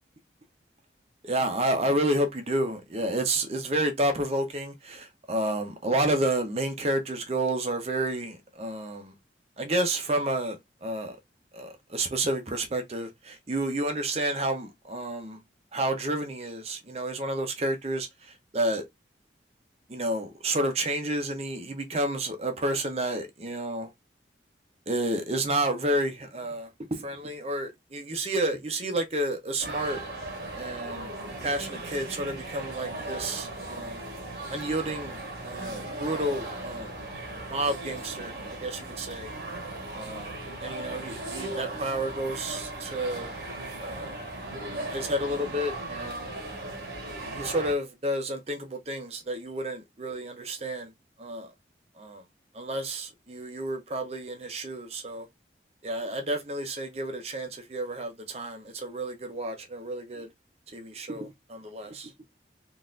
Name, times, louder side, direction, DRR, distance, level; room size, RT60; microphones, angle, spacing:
voice 1, 1.2-9.1 9.6-11.2 11.5-15.4 15.7-18.8 19.9-23.9 24.9-30.0 30.5-31.1 31.4-34.0 34.5-36.9 37.5-39.3 39.9-43.3 43.8-44.2 44.9-46.2 47.1-50.9 51.2-51.5 52.0-52.2 52.5-55.3 55.8-60.3 60.7-62.1, right 1 dB, 35° right, 0.6 m, -30 dB
sound 1, 29.6-47.7, right 2 dB, 60° right, 1.3 m, -37 dB
3.8 x 2.5 x 2.5 m
head